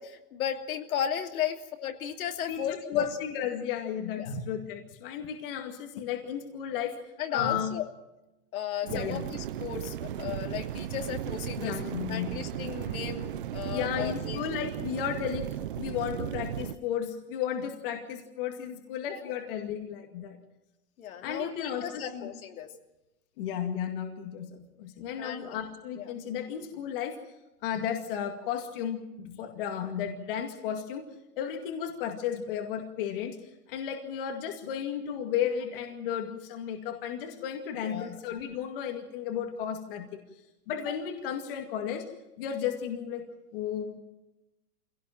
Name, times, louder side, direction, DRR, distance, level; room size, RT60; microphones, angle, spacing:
voice 1, 0.0-3.1 4.2-4.3 7.2-7.9 8.5-11.7 12.1-14.4 21.0-22.7 25.2-25.5 26.0-26.1 37.9-38.1, left 9 dB, 65° left, 4 dB, 2.8 m, -35 dB
voice 2, 2.5-6.9 7.3-7.7 8.8-9.2 11.6-12.3 13.7-15.5 15.8-20.4 21.2-22.4 23.4-27.2 27.6-31.1 31.4-33.4 33.7-40.2 40.7-42.1 42.4-43.2 43.5-44.0, left 8 dB, 35° left, 4 dB, 2.2 m, -34 dB
sound 1, 8.9-16.8, right 11 dB, 35° right, 0.7 m, -36 dB
25.0 x 17.5 x 7.6 m, 0.97 s
supercardioid pair, 175°, 46 cm